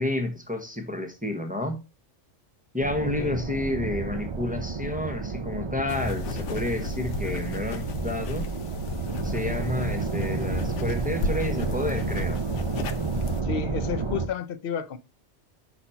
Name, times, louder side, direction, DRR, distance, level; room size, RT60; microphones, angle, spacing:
voice 1, 0.0-1.8 2.7-8.5 9.2-12.4, left 1 dB, 5° right, 1.1 m, -30 dB
sound 1, 2.8-14.3, right 4 dB, 35° right, 0.5 m, -31 dB
voice 2, 3.0-3.4 13.4-15.0, left 7 dB, 55° left, 0.8 m, -31 dB
sound 2, 5.9-13.4, left 4 dB, 85° left, 1.1 m, -34 dB
6.0 x 4.2 x 5.6 m
omnidirectional pair, 1.2 m